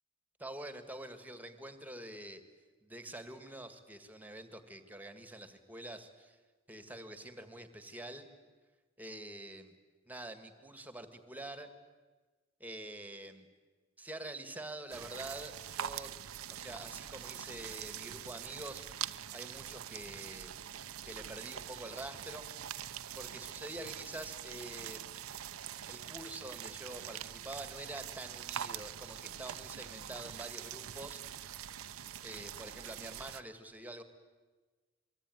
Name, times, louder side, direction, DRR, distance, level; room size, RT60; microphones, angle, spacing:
voice 1, 0.4-2.4 2.8-6.4 6.7-8.3 9.0-9.7 10.1-11.7 12.6-13.5 14.0-16.1 16.5-18.9 19.3-20.5 21.0-22.5 23.1-25.0 25.9-31.8 32.2-34.0, right 1 dB, 10° right, 9 dB, 1.8 m, -46 dB
sound 1, 14.9-33.4, right 10 dB, 85° right, 0.7 m, -44 dB
25.0 x 23.5 x 9.3 m, 1.3 s
head